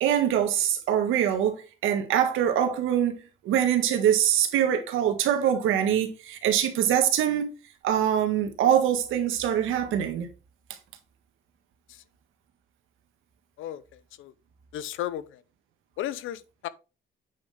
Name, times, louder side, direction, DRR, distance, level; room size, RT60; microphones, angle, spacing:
voice 1, 0.0-7.5 7.8-10.3, right 10 dB, 90° right, 1.7 m, -24 dB
voice 2, 14.7-15.4 16.0-16.7, left 12 dB, 85° left, 0.7 m, -34 dB
8.8 x 5.5 x 3.4 m
cardioid pair, 90°, 20 cm